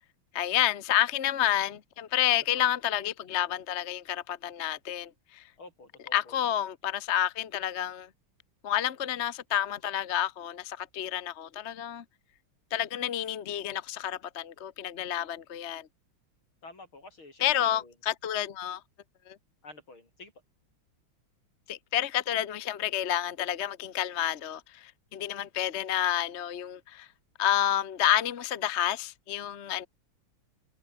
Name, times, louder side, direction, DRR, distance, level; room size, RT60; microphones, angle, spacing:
voice 1, 0.3-5.5 6.1-8.1 8.6-12.0 12.7-15.9 17.4-18.8 19.3-19.4 21.7-27.1 27.4-29.9, left 11 dB, 45° left, 1.0 m, -29 dB
voice 2, 2.3-2.7 5.6-6.4 16.6-17.9 19.6-20.3, left 3 dB, 75° left, 7.4 m, -49 dB
omnidirectional pair, 2.3 m